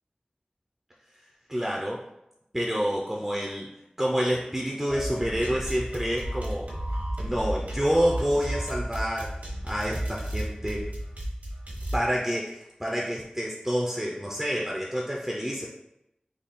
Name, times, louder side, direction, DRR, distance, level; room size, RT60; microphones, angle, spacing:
voice 1, 1.5-2.0 2.5-3.7 4.0-6.7 7.2-9.3 9.6-10.9 11.9-15.7, equal, 10° right, -3 dB, 0.5 m, -28 dB
sound 1, 4.9-12.0, right 1 dB, 70° right, 1.0 m, -33 dB
3.5 x 2.3 x 4.0 m, 0.86 s
wide cardioid pair, 50°, 3 cm